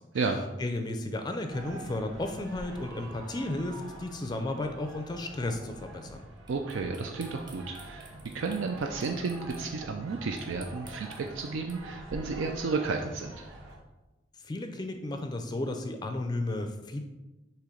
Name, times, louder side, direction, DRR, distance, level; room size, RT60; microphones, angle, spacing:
voice 1, 0.6-6.2 14.4-17.1, left 2 dB, 20° left, 5 dB, 0.4 m, -33 dB
sound 1, 1.5-13.8, right 1 dB, 65° right, 2.0 m, -46 dB
sound 2, 6.5-9.7 10.4-11.7, right 3 dB, 25° right, 0.8 m, -51 dB
voice 2, 6.5-13.5, right 4 dB, 85° right, 3 dB, 0.4 m, -32 dB
6.7 x 3.0 x 4.9 m, 1.1 s
head